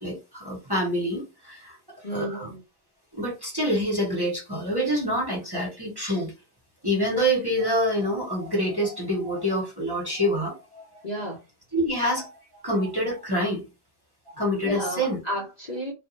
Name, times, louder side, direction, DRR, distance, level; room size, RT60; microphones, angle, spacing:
voice 1, 0.0-1.8 2.1-2.5 3.1-6.3 6.8-10.8 11.7-12.3 12.6-13.6 14.3-15.2, equal, 20° right, 1.0 m, -26 dB
voice 2, 2.0-2.6 11.0-11.4 14.6-15.9, equal, 40° left, 0.7 m, -32 dB
2.5 x 2.1 x 3.0 m
omnidirectional pair, 1.3 m